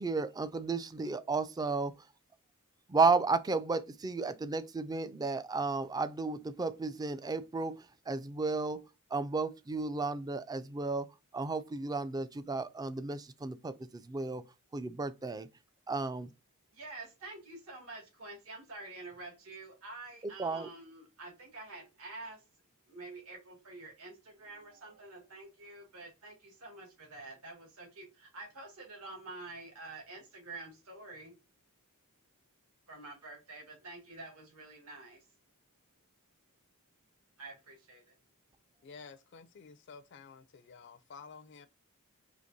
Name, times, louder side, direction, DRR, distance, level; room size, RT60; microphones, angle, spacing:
voice 1, 0.0-1.9 2.9-8.8 9.1-11.1 11.3-14.4 14.7-15.5 15.9-16.3 20.4-20.7, right 4 dB, 15° right, 0.3 m, -33 dB
voice 2, 16.7-22.4 22.9-31.4 32.9-35.3 37.4-38.2, right 2 dB, 80° right, 1.9 m, -48 dB
voice 3, 38.8-41.7, left 5 dB, 50° left, 0.4 m, -51 dB
5.0 x 2.9 x 2.6 m
head